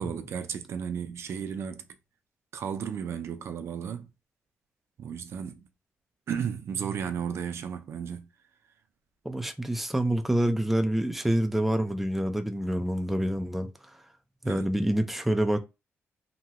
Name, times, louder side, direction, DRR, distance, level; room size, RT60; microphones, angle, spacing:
voice 1, 0.0-1.8 2.5-4.1 5.0-5.6 6.3-8.3 14.4-14.7, right 7 dB, 65° right, 0.5 m, -34 dB
voice 2, 9.2-13.7 14.4-15.6, right 1 dB, 5° right, 0.4 m, -27 dB
2.9 x 2.2 x 2.9 m
cardioid pair, 100°, 5 cm